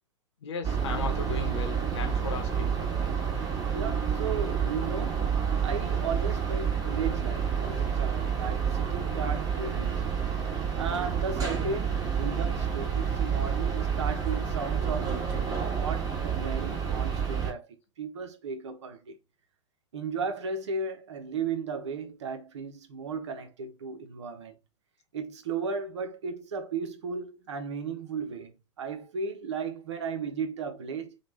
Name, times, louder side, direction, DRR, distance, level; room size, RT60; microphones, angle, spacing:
voice 1, 0.4-2.8, left 5 dB, 65° left, 0.8 m, -36 dB
sound 1, 0.6-17.5, right 7 dB, 25° right, 1.3 m, -29 dB
voice 2, 3.7-5.3 5.6-10.1 10.8-17.7 18.0-19.2 19.9-24.5 25.1-28.5 28.8-31.2, right 5 dB, 70° right, 0.8 m, -35 dB
3.2 x 2.3 x 3.1 m
figure-of-eight pair, 100°, 16 cm